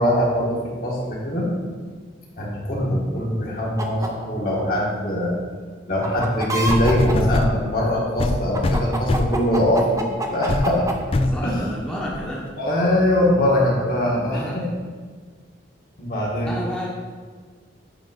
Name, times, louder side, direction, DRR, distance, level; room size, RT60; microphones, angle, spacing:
voice 1, 0.0-1.5 2.4-5.3 5.9-10.8 11.4-11.5 12.6-14.7 16.0-16.5, left 1 dB, 50° left, -4 dB, 1.7 m, -22 dB
sound 1, 3.8-4.1 6.0-7.1 8.5-10.9, right 2 dB, 15° right, 0.6 m, -26 dB
sound 2, 6.7-7.6 8.2-9.5 10.0-10.1 10.5-10.7 11.1-11.4 12.1-12.2, left 2 dB, 30° left, 0.3 m, -22 dB
voice 2, 11.1-12.5 14.1-14.6 16.4-16.9, equal, 5° left, -6 dB, 1.0 m, -31 dB
8.9 x 3.6 x 5.2 m, 1.5 s
head